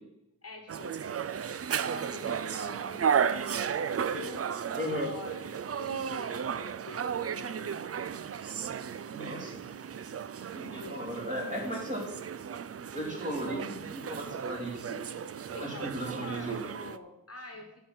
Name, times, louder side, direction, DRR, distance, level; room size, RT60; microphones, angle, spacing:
voice 1, 0.4-1.0 1.2-3.4 3.8-7.9 9.2-9.5 10.7-11.1 11.6-11.9 12.7-12.9 15.5-17.8, left 3 dB, 40° left, 3 dB, 1.4 m, -46 dB
sound 1, 0.7-17.0, right 7 dB, 40° right, 0.4 m, -34 dB
voice 2, 4.8-5.1 9.1-9.6 10.5-12.0 12.9-15.0 15.6-16.6, equal, 20° right, -2 dB, 3.5 m, -36 dB
12.0 x 4.6 x 8.2 m, 0.91 s
wide cardioid pair, 125°, 37 cm